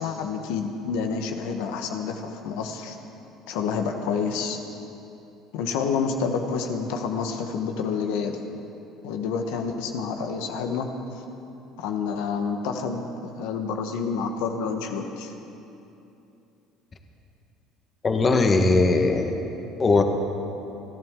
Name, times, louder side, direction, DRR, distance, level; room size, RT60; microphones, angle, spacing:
voice 1, 0.0-3.0 3.5-4.6 5.5-8.4 9.0-10.9 11.8-15.3, left 5 dB, 90° left, 4 dB, 1.2 m, -28 dB
voice 2, 18.0-19.3 19.8-20.0, left 3 dB, 25° left, 4 dB, 1.4 m, -19 dB
29.5 x 11.0 x 3.8 m, 2.8 s
cardioid pair, 125°, 0 cm